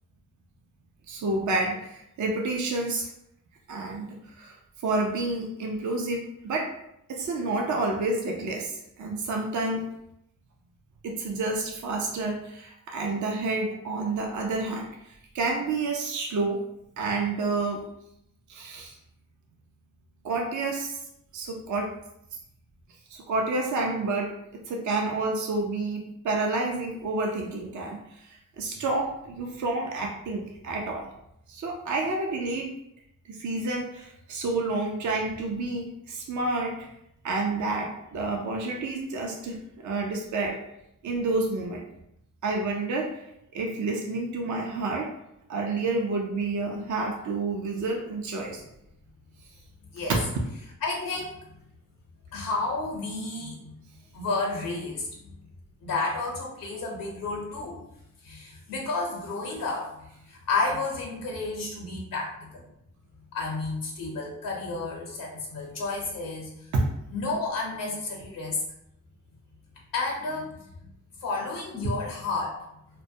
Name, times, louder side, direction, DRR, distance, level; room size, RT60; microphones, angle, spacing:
voice 1, 1.1-3.1 3.7-4.5 4.8-6.7 7.1-9.9 11.0-16.6 17.0-17.8 18.5-19.0 20.2-20.9 21.3-21.9 23.1-24.3 24.7-31.1 31.5-32.7 33.3-36.9 37.2-40.6 41.0-41.8 42.4-43.1 43.5-45.1 45.5-48.6 50.1-50.2 66.7-66.9, right 3 dB, 60° right, 1 dB, 0.5 m, -29 dB
voice 2, 50.8-51.4 52.3-53.7 54.1-55.4 55.8-57.8 58.2-59.9 60.3-62.6 63.3-66.5 67.1-68.6 69.9-70.9 71.2-72.6, left 3 dB, 85° left, -1 dB, 0.6 m, -31 dB
2.2 x 2.1 x 2.6 m, 0.80 s
cardioid pair, 50°, 33 cm